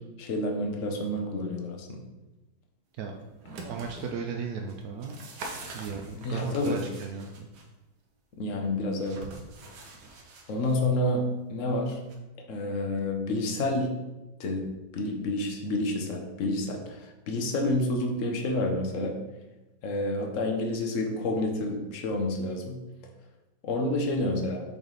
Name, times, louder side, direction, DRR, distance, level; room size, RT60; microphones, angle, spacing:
voice 1, 0.2-2.0 6.1-6.8 8.4-9.2 10.5-11.2 11.5-12.0 12.5-13.9 14.4-19.1 19.8-22.8 23.6-24.6, left 1 dB, 55° left, 2 dB, 1.0 m, -29 dB
sound 1, 3.2-4.1 4.7-7.6 9.0-10.8 12.1-12.2, right 3 dB, 60° right, 1.3 m, -44 dB
voice 2, 3.5-5.2 5.7-7.5 19.9-20.3, right 5 dB, 85° right, 2 dB, 0.8 m, -37 dB
7.2 x 3.3 x 3.9 m, 1.1 s
omnidirectional pair, 2.1 m